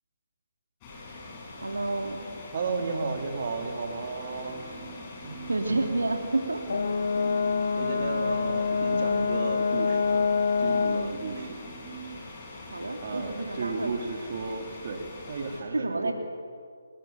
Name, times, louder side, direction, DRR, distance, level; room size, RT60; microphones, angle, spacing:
sound 1, 0.8-15.6, left 2 dB, 25° left, 6.7 m, -43 dB
voice 1, 1.6-2.3 5.5-6.8 8.3-8.4 12.7-13.9 15.7-16.1, right 2 dB, 80° right, 3 dB, 2.8 m, -29 dB
voice 2, 2.5-4.8 5.2-5.4 5.7-5.8 7.7-10.1 10.6-11.6 13.0-16.1, right 4 dB, 45° right, 2 dB, 3.8 m, -34 dB
sound 2, 3.9-12.2, right 6 dB, 20° right, 1.8 m, -46 dB
Brass instrument, 6.7-11.2, left 5 dB, 60° left, 1.0 m, -26 dB
30.0 x 20.0 x 7.5 m, 2.1 s
figure-of-eight pair, 145°, 0 cm